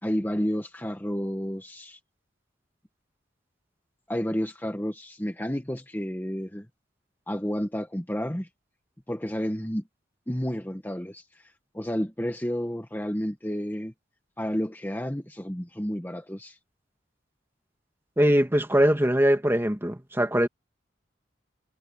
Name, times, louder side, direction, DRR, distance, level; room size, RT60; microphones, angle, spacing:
voice 1, 0.0-2.0 4.1-6.7 7.3-8.5 9.1-9.8 10.3-13.9 14.4-16.6, equal, 10° left, 1.4 m, -31 dB
voice 2, 18.2-20.5, equal, 10° right, 2.2 m, -22 dB
head